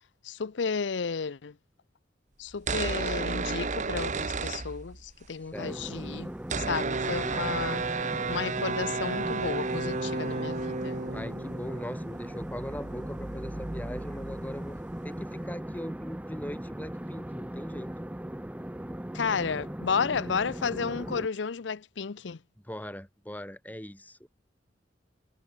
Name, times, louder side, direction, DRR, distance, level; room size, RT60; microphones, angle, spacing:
voice 1, 0.2-1.5 2.4-6.3 6.6-7.8 8.3-11.0 19.1-22.4, left 5 dB, 80° left, 0.6 m, -32 dB
sound 1, 2.5-5.3 5.5-5.6 5.8-15.2, right 4 dB, 45° right, 1.2 m, -33 dB
voice 2, 5.4-5.8 7.2-7.6 11.1-17.9 22.6-24.3, equal, 10° left, 5.0 m, -40 dB
sound 2, 5.5-21.3, right 1 dB, 10° right, 0.6 m, -38 dB
head